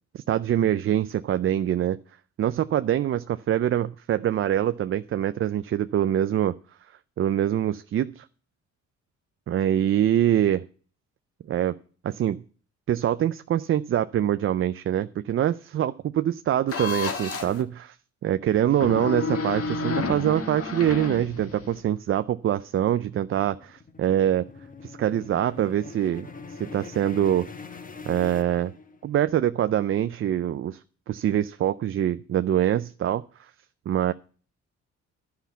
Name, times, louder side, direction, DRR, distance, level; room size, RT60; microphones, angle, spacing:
voice 1, 0.1-2.0 2.4-6.6 7.2-8.3 9.5-10.6 11.5-11.8 12.0-12.4 12.9-18.0 18.2-24.5 24.8-27.5 28.1-28.7 29.0-30.8 31.1-33.2 33.9-34.1, right 11 dB, 45° right, 11 dB, 0.4 m, -24 dB
sound 1, 16.7-17.6 18.7-21.8, left 4 dB, 50° left, 1.7 m, -30 dB
sound 2, 22.1-29.2, left 4 dB, 30° left, 1.0 m, -43 dB
11.5 x 5.8 x 8.2 m, 0.43 s
cardioid pair, 90°, 30 cm